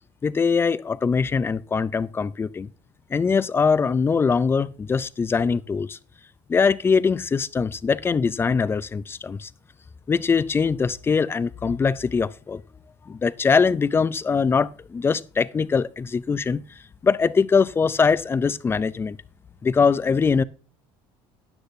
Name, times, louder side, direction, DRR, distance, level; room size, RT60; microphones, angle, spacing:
voice 1, 0.2-2.7 3.1-6.0 6.5-9.5 10.1-12.6 13.1-16.6 17.0-19.2 19.6-20.4, left 5 dB, 20° left, 0.4 m, -22 dB
13.0 x 9.6 x 2.7 m
cardioid pair, 110°, 11 cm